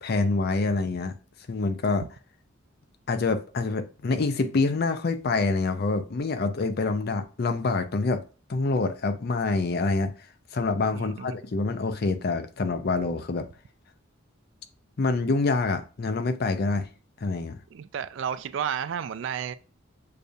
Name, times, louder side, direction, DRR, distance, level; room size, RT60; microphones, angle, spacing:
voice 1, 0.0-1.2 1.5-2.1 3.1-8.2 8.5-10.1 10.5-13.5 15.0-16.9 17.2-17.6, left 3 dB, 50° left, 0.5 m, -26 dB
voice 2, 10.9-11.4 17.7-19.5, right 8 dB, 60° right, 0.3 m, -32 dB
6.6 x 2.3 x 2.6 m
head